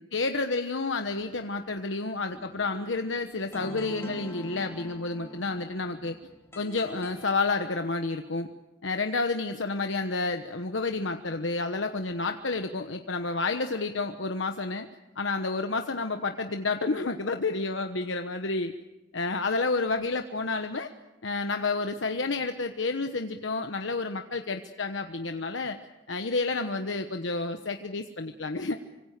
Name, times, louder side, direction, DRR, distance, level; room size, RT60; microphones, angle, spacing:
voice 1, 0.0-6.2 6.6-8.5 8.8-14.9 15.2-18.7 19.1-20.9 21.2-25.8 26.1-28.8, left 3 dB, 90° left, 6 dB, 1.2 m, -30 dB
sound 1, 2.3-7.3, left 1 dB, 15° left, 4.3 m, -45 dB
26.0 x 25.5 x 6.7 m, 1.0 s
head